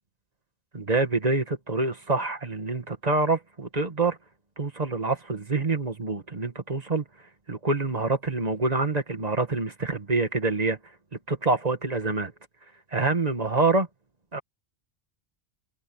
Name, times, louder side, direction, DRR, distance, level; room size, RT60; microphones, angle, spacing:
voice 1, 0.7-4.2 4.6-7.0 7.5-10.8 11.3-12.3 12.9-13.9 14.3-14.4, right 3 dB, 35° right, 2.0 m, -26 dB
omnidirectional pair, 1.1 m